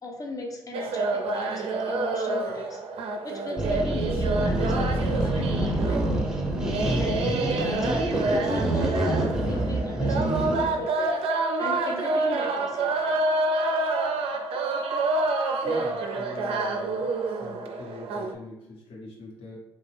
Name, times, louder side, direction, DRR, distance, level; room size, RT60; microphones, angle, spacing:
voice 1, 0.0-2.8 3.2-6.4 7.0-11.2 11.6-13.2, left 1 dB, 35° left, 1 dB, 0.7 m, -37 dB
sound 1, 0.7-18.3, right 3 dB, 65° right, 0.4 m, -28 dB
sound 2, 3.6-10.8, right 1 dB, 5° right, 0.8 m, -26 dB
voice 2, 15.6-17.1 17.4-19.6, left 2 dB, 65° left, -3 dB, 1.0 m, -41 dB
2.4 x 2.3 x 3.3 m, 0.90 s
hypercardioid pair, 50°, 11 cm